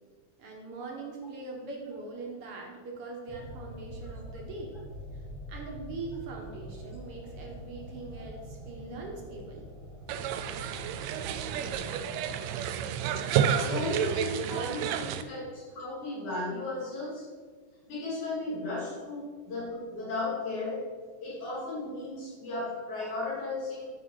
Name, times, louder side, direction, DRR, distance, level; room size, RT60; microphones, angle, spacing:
voice 1, 0.4-4.7 5.1-9.7 16.1-16.2, right 3 dB, 50° right, 0 dB, 2.4 m, -42 dB
sound 1, 3.3-11.7, equal, 20° left, 1.0 m, -44 dB
sound 2, 10.1-15.2, right 8 dB, 75° right, 1.7 m, -30 dB
voice 2, 13.5-17.3 17.9-20.9 21.2-23.9, left 2 dB, 75° left, -7 dB, 4.3 m, -35 dB
12.0 x 5.5 x 5.6 m, 1.5 s
omnidirectional pair, 3.4 m